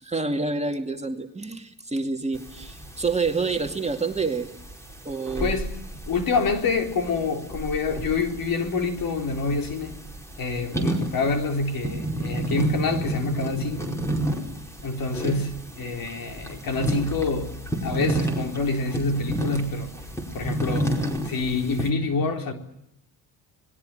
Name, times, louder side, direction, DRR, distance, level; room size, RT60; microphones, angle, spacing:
voice 1, 0.0-4.5 5.0-5.5, right 4 dB, 15° right, 2.4 m, -28 dB
sound 1, 2.3-21.9, right 1 dB, 5° left, 5.1 m, -31 dB
voice 2, 5.4-5.8 6.1-10.0 10.4-14.0 14.8-17.5 17.8-20.0 20.3-20.9 21.3-22.5, left 4 dB, 50° left, 4.0 m, -27 dB
26.0 x 20.5 x 9.1 m
cardioid pair, 95°, 43 cm